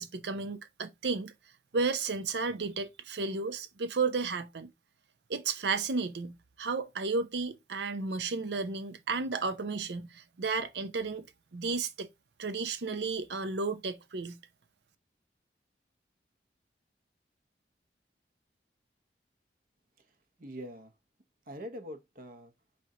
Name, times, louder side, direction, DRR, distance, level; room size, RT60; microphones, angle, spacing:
voice 1, 0.0-1.3 1.7-4.7 5.3-11.2 11.5-12.1 12.4-14.4, right 4 dB, 80° right, 0.6 m, -33 dB
voice 2, 20.0-20.9 21.5-22.5, equal, 50° right, 0.9 m, -44 dB
4.2 x 3.3 x 3.7 m
head